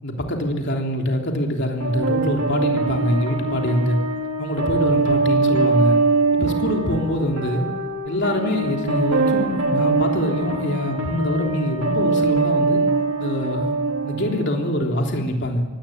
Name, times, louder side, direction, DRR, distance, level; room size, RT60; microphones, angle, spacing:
voice 1, 0.0-4.0 4.4-6.0 6.3-7.7 8.0-12.8 13.2-13.7 14.0-15.6, equal, 50° left, 2 dB, 3.5 m, -24 dB
sound 1, 1.8-14.8, right 3 dB, 70° right, 2.6 m, -23 dB
23.5 x 18.0 x 8.9 m, 1.2 s
head